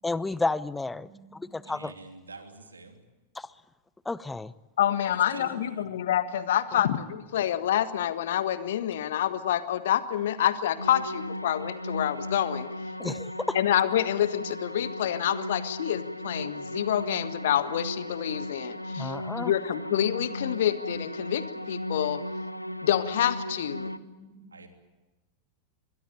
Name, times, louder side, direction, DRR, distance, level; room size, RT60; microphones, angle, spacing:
voice 1, 0.0-1.1 1.5-1.9 3.4-3.5 4.1-4.5 13.0-13.6 19.0-19.5, left 3 dB, 10° left, 19 dB, 0.8 m, -31 dB
voice 2, 0.9-1.5 5.4-5.6 6.7-6.8 23.6-24.4, left 3 dB, 40° left, 8 dB, 5.0 m, -53 dB
voice 3, 1.6-3.0 5.0-5.9 24.5-24.7, right 3 dB, 75° right, 5 dB, 3.1 m, -45 dB
voice 4, 4.8-12.7 13.5-22.2 22.8-23.9, left 11 dB, 60° left, 12 dB, 1.6 m, -27 dB
sound 1, 10.8-24.0, left 1 dB, 90° left, 0.8 m, -36 dB
24.0 x 21.5 x 8.8 m, 1.1 s
figure-of-eight pair, 90°, 0 cm